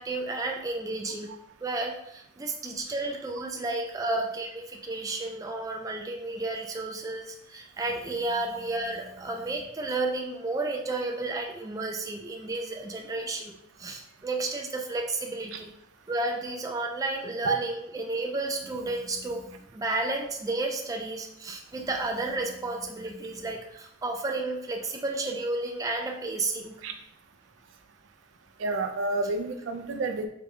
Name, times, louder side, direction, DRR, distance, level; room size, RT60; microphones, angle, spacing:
voice 1, 0.0-1.3 1.6-13.5 13.8-15.7 16.1-26.8, right 2 dB, 20° right, 1 dB, 0.3 m, -32 dB
voice 2, 28.6-30.3, right 3 dB, 85° right, 7 dB, 0.4 m, -29 dB
3.8 x 2.2 x 3.4 m, 0.74 s
head